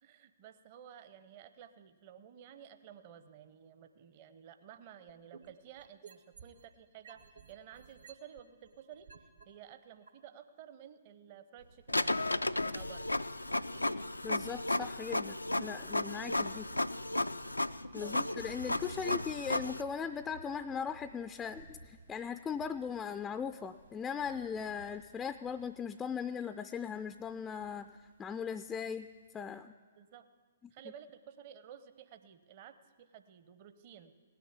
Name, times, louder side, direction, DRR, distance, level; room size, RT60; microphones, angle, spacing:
voice 1, 0.0-7.2 7.5-12.3 12.6-13.1 16.2-16.6 18.0-18.2 30.0-30.3 30.7-34.1, right 9 dB, 40° right, 10 dB, 0.8 m, -53 dB
sound 1, 5.1-6.7 7.0-9.4 10.1-10.2, right 6 dB, 65° right, 1.0 m, -55 dB
sound 2, 11.6-29.3, right 2 dB, 85° right, 1.8 m, -58 dB
Printer, 11.9-19.8, left 2 dB, 85° left, 0.4 m, -34 dB
voice 2, 14.2-16.7 17.9-27.9 28.2-29.1 29.3-29.7, left 7 dB, 15° left, 10 dB, 0.4 m, -39 dB
17.5 x 6.9 x 9.6 m, 1.5 s
figure-of-eight pair, 125°, 0 cm